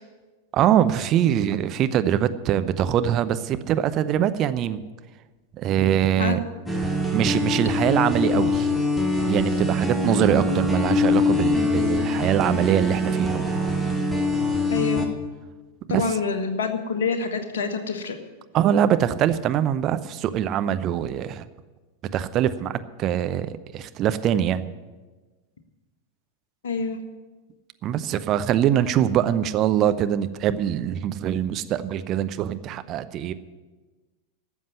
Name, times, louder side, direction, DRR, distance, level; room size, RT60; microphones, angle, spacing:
voice 1, 0.5-4.8 5.6-6.4 7.1-8.7 9.3-13.4 15.9-16.1 18.5-21.5 22.1-24.7 27.8-33.3, right 10 dB, 35° right, 11 dB, 0.7 m, -23 dB
sound 1, 6.7-15.1, left 2 dB, ahead, 1.6 m, -23 dB
voice 2, 14.7-15.1 15.9-18.2 26.6-27.0, left 5 dB, 60° left, 6 dB, 1.5 m, -26 dB
12.5 x 7.4 x 9.7 m, 1.3 s
figure-of-eight pair, 90°, 0 cm